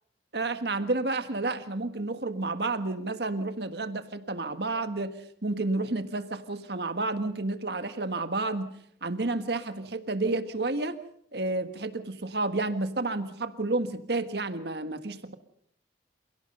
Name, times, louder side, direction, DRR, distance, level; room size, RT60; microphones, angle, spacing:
voice 1, 0.3-8.7 9.0-11.0 11.3-15.3, right 2 dB, 65° right, 10 dB, 1.6 m, -30 dB
28.0 x 17.5 x 5.4 m, 0.69 s
head